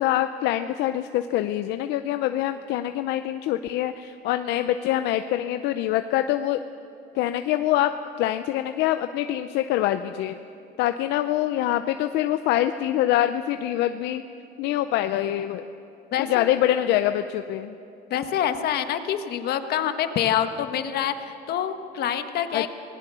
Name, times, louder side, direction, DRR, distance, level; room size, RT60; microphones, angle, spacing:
voice 1, 0.0-6.6 7.1-7.9 8.2-10.4 10.8-14.2 14.6-15.7 16.3-17.8 22.5-22.7, left 13 dB, 90° left, 9 dB, 0.7 m, -24 dB
voice 2, 16.1-16.5 18.1-22.7, left 9 dB, 70° left, 9 dB, 1.4 m, -26 dB
26.5 x 19.0 x 6.9 m, 2.8 s
cardioid pair, 110°, 17 cm